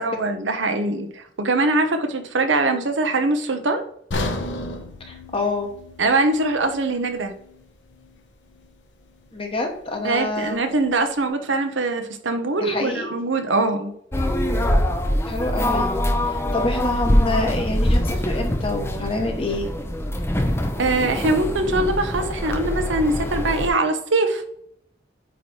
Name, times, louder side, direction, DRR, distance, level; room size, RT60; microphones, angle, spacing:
voice 1, 0.0-3.8 6.0-7.3 10.0-13.9 20.8-24.4, right 2 dB, 90° right, 6 dB, 1.0 m, -22 dB
sound 1, 4.1-8.2 8.5-8.7 9.3-9.4, left 2 dB, 80° left, 1.0 m, -33 dB
voice 2, 5.0-5.7 9.3-10.6 12.6-13.1 15.3-16.0 16.3-19.7, left 2 dB, 30° left, 2 dB, 1.3 m, -27 dB
sound 2, 14.1-23.7, left 1 dB, 15° left, 0.7 m, -23 dB
9.1 x 3.1 x 4.3 m, 0.67 s
head